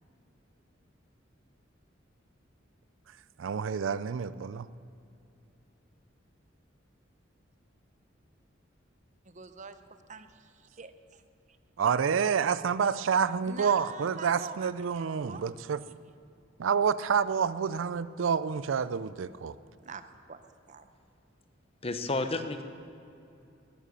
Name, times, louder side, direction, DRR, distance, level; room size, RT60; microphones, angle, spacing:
voice 1, 3.4-4.7 11.8-15.8 16.6-19.5, right 6 dB, 75° right, 16 dB, 0.4 m, -28 dB
voice 2, 9.2-9.8 10.1-11.2 13.4-15.4 15.8-15.9 19.8-20.4 20.7-20.9, right 5 dB, 40° right, 10 dB, 0.7 m, -45 dB
voice 3, 21.8-22.6, left 2 dB, 30° left, 8 dB, 0.9 m, -31 dB
19.0 x 10.0 x 6.9 m, 2.6 s
head